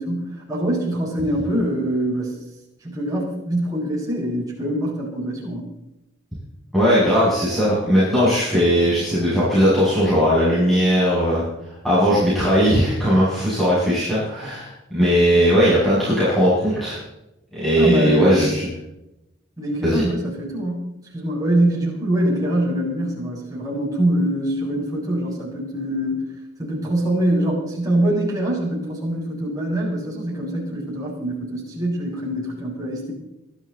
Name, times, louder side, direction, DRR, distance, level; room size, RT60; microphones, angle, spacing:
voice 1, 0.0-2.4 2.8-5.7 17.8-18.5 19.6-26.3 26.6-33.1, right 1 dB, 20° right, -5 dB, 6.9 m, -24 dB
voice 2, 6.7-17.0 17.5-18.7 19.8-20.0, equal, ahead, -11 dB, 7.1 m, -18 dB
23.0 x 13.5 x 4.2 m, 0.90 s
head